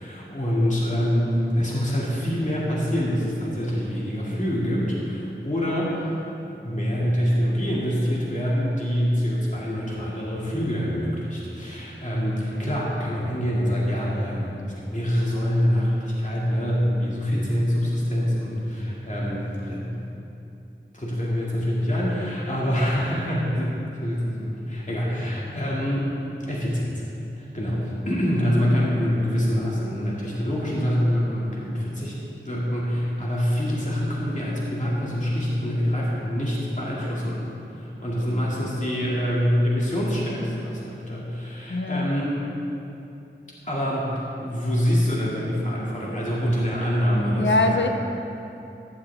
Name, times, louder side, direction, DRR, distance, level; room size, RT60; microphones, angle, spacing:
voice 1, 0.0-6.2 6.6-14.5 14.9-20.0 20.9-26.2 26.5-27.0 27.4-32.2 32.4-37.4 37.7-42.3 43.6-47.8, equal, 40° left, -6 dB, 2.6 m, -25 dB
voice 2, 41.7-42.1 47.4-47.9, left 2 dB, 65° left, 5 dB, 0.9 m, -22 dB
15.0 x 11.5 x 3.7 m, 2.8 s
wide cardioid pair, 60°, 20 cm